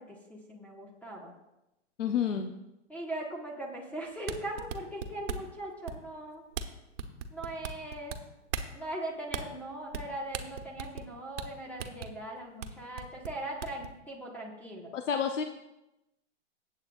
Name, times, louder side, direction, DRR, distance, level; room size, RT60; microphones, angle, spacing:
voice 1, 0.0-1.3 2.9-6.4 7.3-8.1 8.7-14.9, right 1 dB, 5° left, -2 dB, 1.3 m, -40 dB
voice 2, 2.0-2.5 14.9-15.4, left 7 dB, 85° left, 6 dB, 0.8 m, -29 dB
sound 1, 4.1-5.5 5.9-6.2 6.5-6.7 7.0-8.2 8.5-8.7 9.3-9.4 9.9-10.1 10.3-11.1 11.4-11.5 11.8-12.1 12.6-12.7 13.0-13.9, right 6 dB, 75° right, 1.2 m, -37 dB
17.5 x 7.9 x 2.4 m, 0.92 s
hypercardioid pair, 130°, 36 cm